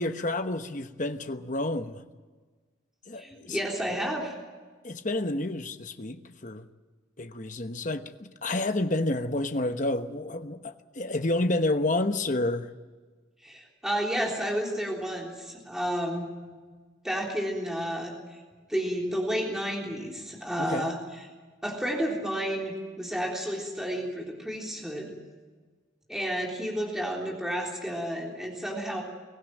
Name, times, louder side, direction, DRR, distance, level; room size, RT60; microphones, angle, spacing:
voice 1, 0.0-2.0 3.1-3.6 4.8-6.7 7.2-12.7 20.6-20.9, left 2 dB, 40° left, 1.1 m, -29 dB
voice 2, 3.2-4.3 13.4-16.3 17.0-18.4 18.7-21.0 21.6-25.1 26.1-29.0, equal, ahead, 3.6 m, -31 dB
23.5 x 16.0 x 9.1 m
head